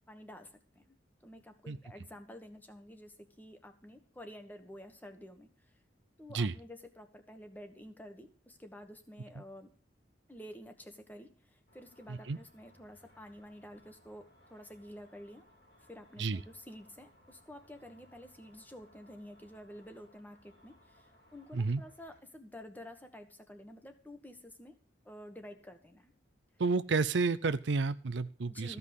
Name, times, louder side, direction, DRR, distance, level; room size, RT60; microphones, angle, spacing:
voice 1, 0.1-1.0 1.2-5.5 6.2-9.7 10.3-15.4 15.9-24.8 25.0-26.1 28.5-28.8, equal, 10° left, 6 dB, 1.4 m, -50 dB
Car / Traffic noise roadway noise / Engine, 11.7-22.2, equal, 55° left, 3.3 m, -64 dB
voice 2, 26.6-28.8, right 4 dB, 70° right, 13 dB, 0.6 m, -31 dB
14.5 x 5.5 x 8.1 m, 0.41 s
head